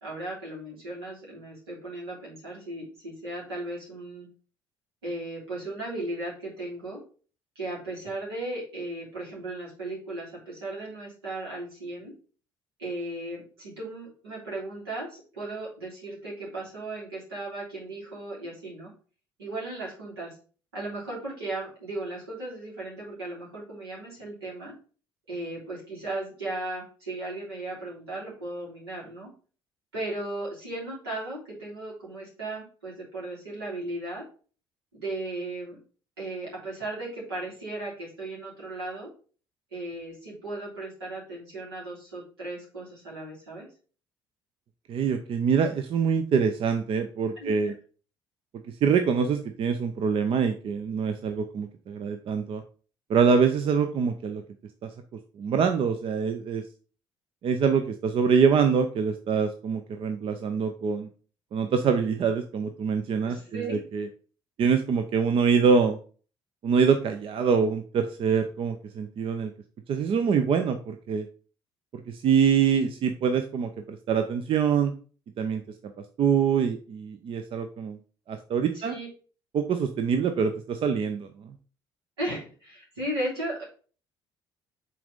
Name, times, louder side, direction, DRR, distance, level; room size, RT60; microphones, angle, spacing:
voice 1, 0.0-4.3 5.0-7.0 7.5-12.1 12.8-18.9 19.4-20.4 20.7-24.7 25.3-29.3 29.9-34.2 34.9-35.8 36.2-39.1 39.7-43.7 47.4-47.7 63.2-63.8 78.7-79.1 82.2-83.6, right 2 dB, 80° right, -6 dB, 3.2 m, -36 dB
voice 2, 44.9-47.7 48.7-52.6 53.1-54.4 54.8-54.9 55.4-56.6 57.4-61.1 61.5-64.1 64.6-66.0 66.6-69.5 69.9-71.3 71.9-74.9 75.4-75.6 76.2-78.0 78.3-79.0 79.5-81.5, right 6 dB, 45° right, 7 dB, 0.6 m, -25 dB
5.9 x 4.1 x 5.0 m, 0.39 s
figure-of-eight pair, 50°, 13 cm